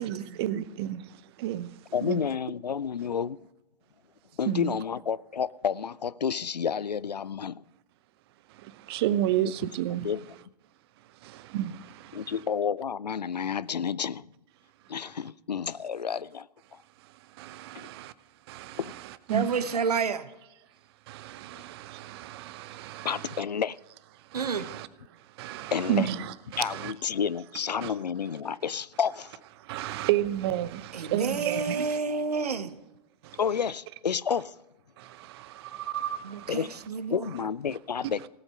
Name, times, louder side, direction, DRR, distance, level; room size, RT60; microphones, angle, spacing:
voice 1, 0.0-1.7 2.0-2.2 4.5-4.8 8.5-10.1 11.2-12.3 17.4-18.1 18.5-19.8 21.1-23.4 24.3-24.9 25.4-26.9 27.8-27.9 29.6-32.0 33.2-33.4 35.0-36.5, right 12 dB, 40° right, 0.7 m, -32 dB
voice 2, 1.9-3.5 4.4-7.6 9.9-10.2 12.1-14.3 14.9-16.8 17.7-17.9 18.8-18.9 23.0-23.8 25.7-26.1 26.6-29.3 33.4-34.6 36.5-36.8 37.1-38.3, left 7 dB, 80° left, 0.4 m, -30 dB
voice 3, 19.3-20.3 24.3-24.7 30.9-32.8 36.2-37.3, right 5 dB, 70° right, 1.0 m, -29 dB
18.0 x 8.0 x 5.6 m
figure-of-eight pair, 105°, 21 cm